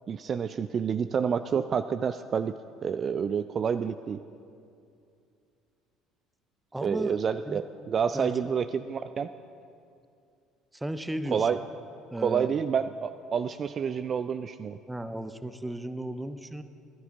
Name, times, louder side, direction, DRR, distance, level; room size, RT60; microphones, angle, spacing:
voice 1, 0.1-4.2 6.8-9.3 11.3-11.6 12.2-14.8, right 7 dB, 40° right, 12 dB, 0.3 m, -29 dB
voice 2, 6.7-7.2 7.4-7.6 8.1-8.3 10.7-11.5 12.1-12.5 14.9-16.6, right 1 dB, 10° right, 11 dB, 0.7 m, -34 dB
18.5 x 12.5 x 3.5 m, 2.5 s
figure-of-eight pair, 60°, 0 cm